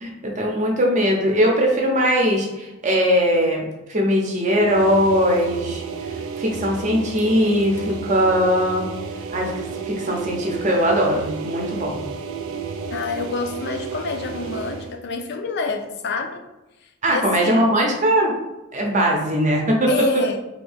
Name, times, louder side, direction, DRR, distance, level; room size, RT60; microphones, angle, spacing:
voice 1, 0.0-3.6 3.9-5.8 6.4-8.9 9.3-12.0 17.0-18.3 18.7-19.9, equal, 35° right, 0 dB, 0.6 m, -20 dB
sound 1, 4.5-15.0, right 5 dB, 75° right, 0.4 m, -32 dB
voice 2, 12.9-16.4 17.1-17.7 19.9-20.4, left 4 dB, 55° left, 5 dB, 0.4 m, -27 dB
2.8 x 2.6 x 3.4 m, 1.0 s
head